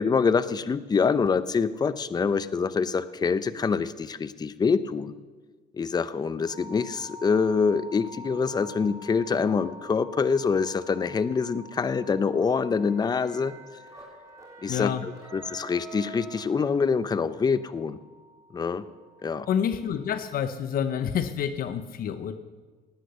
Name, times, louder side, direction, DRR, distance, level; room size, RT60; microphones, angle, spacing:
voice 1, 0.0-5.1 5.7-13.5 14.6-18.0 18.5-18.8 19.2-19.5, left 5 dB, 25° left, 14 dB, 0.6 m, -25 dB
sound 1, 6.4-20.4, equal, 40° left, 6.3 m, -48 dB
sound 2, 12.4-17.2, right 5 dB, 20° right, 3.7 m, -47 dB
voice 2, 14.7-15.0 19.5-22.4, left 8 dB, 60° left, 11 dB, 0.8 m, -28 dB
17.0 x 9.7 x 6.8 m, 1.4 s
cardioid pair, 110°, 17 cm